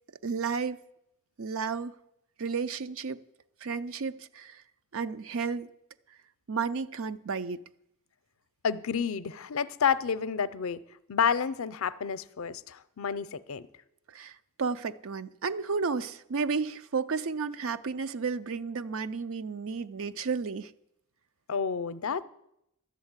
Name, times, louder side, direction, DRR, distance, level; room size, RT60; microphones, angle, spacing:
voice 1, 0.2-0.8 1.4-1.9 2.4-3.2 3.6-4.6 4.9-5.7 6.5-7.6 14.1-14.3 14.6-20.7, right 5 dB, 65° right, 0.5 m, -32 dB
voice 2, 8.6-10.8 11.1-13.6 21.5-22.2, left 6 dB, 70° left, 0.6 m, -30 dB
12.5 x 7.2 x 9.6 m
head